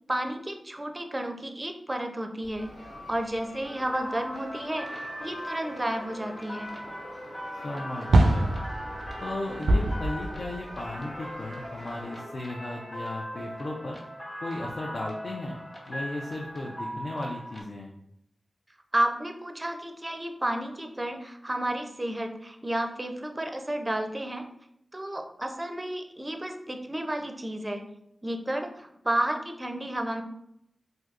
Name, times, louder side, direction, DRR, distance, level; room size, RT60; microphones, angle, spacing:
voice 1, 0.1-6.7 18.9-24.5 24.9-27.9 28.2-30.2, right 1 dB, 25° right, 5 dB, 0.4 m, -32 dB
sound 1, 2.4-4.0 4.3-4.4 6.8-6.9 8.1-12.0, right 2 dB, 85° right, 0.4 m, -26 dB
sound 2, 2.6-12.2, equal, 85° left, 1.0 m, -45 dB
sound 3, 3.9-17.6, equal, 40° left, 1.0 m, -40 dB
voice 2, 7.6-8.6 9.2-14.0 14.4-17.9, left 2 dB, 65° left, -1 dB, 0.4 m, -36 dB
3.3 x 2.7 x 2.4 m, 0.77 s
cardioid pair, 45°, 0 cm